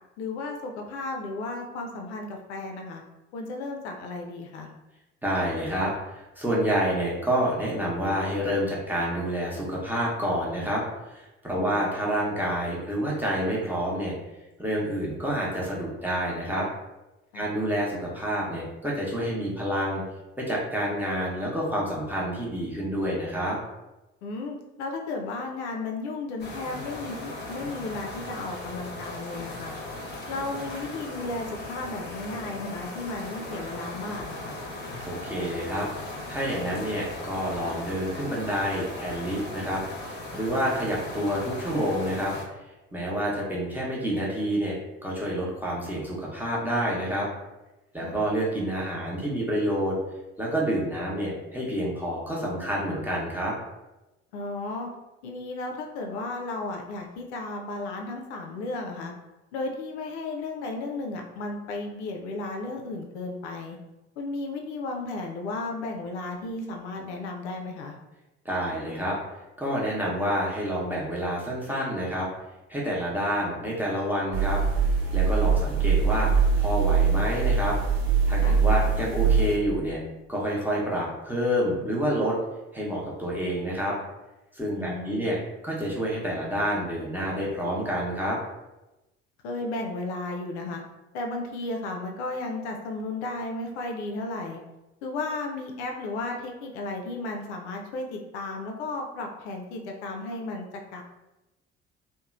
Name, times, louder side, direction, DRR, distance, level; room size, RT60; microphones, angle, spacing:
voice 1, 0.2-3.0 3.3-4.7 11.5-11.8 17.3-17.5 24.2-29.7 30.3-34.6 48.0-48.2 54.3-54.9 55.2-59.1 59.5-63.8 64.2-67.9 78.4-78.6 84.7-85.3 89.4-90.8 91.1-94.6 95.0-100.7 100.9-101.0, left 2 dB, 65° left, 2 dB, 0.5 m, -34 dB
voice 2, 5.2-14.1 14.6-16.7 17.3-20.0 20.4-23.6 35.0-35.9 36.3-42.3 42.9-47.3 47.9-50.0 50.4-53.5 68.4-69.2 69.6-72.3 72.7-74.6 75.1-76.3 76.6-77.8 78.3-80.0 80.3-82.4 82.7-83.9 84.5-88.4, equal, 5° right, -5 dB, 0.8 m, -28 dB
sound 1, 26.4-42.4, left 2 dB, 30° left, 0.8 m, -38 dB
sound 2, 74.3-79.6, right 5 dB, 75° right, 0.7 m, -22 dB
2.8 x 2.1 x 2.4 m, 1.0 s
figure-of-eight pair, 50°, 36 cm